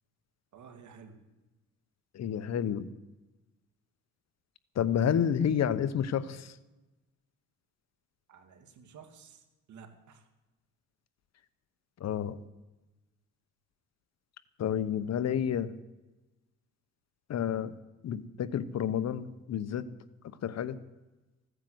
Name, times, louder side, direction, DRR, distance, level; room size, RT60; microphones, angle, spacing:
voice 1, 0.5-1.2 8.3-10.3, right 6 dB, 70° right, 7 dB, 2.3 m, -53 dB
voice 2, 2.1-2.9 4.8-6.5 12.0-12.4 14.6-15.7 17.3-17.7 18.0-19.8 20.2-20.8, left 8 dB, 60° left, 15 dB, 1.0 m, -30 dB
15.5 x 9.7 x 7.8 m, 1.1 s
cardioid pair, 90°, 30 cm